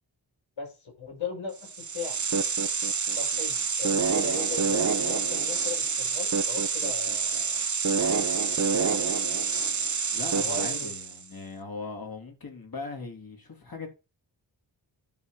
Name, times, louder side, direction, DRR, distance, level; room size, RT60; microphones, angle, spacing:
voice 1, 0.6-2.2 3.2-7.6 8.6-9.1 10.4-10.9, left 4 dB, 75° left, 5.4 m, -38 dB
sound 1, 1.6-11.2, right 5 dB, 35° right, 0.9 m, -27 dB
voice 2, 10.1-13.9, left 3 dB, 45° left, 2.9 m, -39 dB
10.5 x 3.9 x 4.8 m
wide cardioid pair, 70°, 47 cm